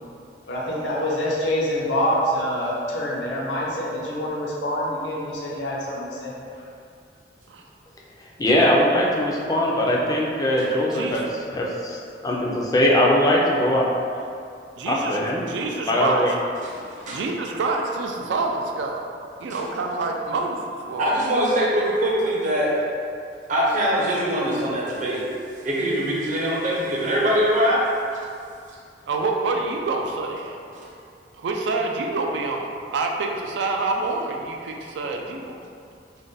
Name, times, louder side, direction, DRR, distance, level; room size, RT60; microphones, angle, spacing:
voice 1, 0.5-6.4, equal, 80° left, -4 dB, 0.6 m, -26 dB
voice 2, 8.4-11.2 11.5-12.0 12.2-13.8 14.9-15.4 15.9-16.3, left 1 dB, 20° left, -3 dB, 0.3 m, -20 dB
voice 3, 10.9-11.2 14.8-16.3 17.1-19.1 19.4-21.1 29.1-30.6 31.4-35.6, right 3 dB, 90° right, 1 dB, 0.3 m, -27 dB
voice 4, 16.6-17.2 19.5-19.6 21.0-22.7 23.5-25.2 25.6-27.8 30.7-30.8, equal, 45° right, -5 dB, 0.6 m, -23 dB
2.5 x 2.1 x 3.8 m, 2.4 s
head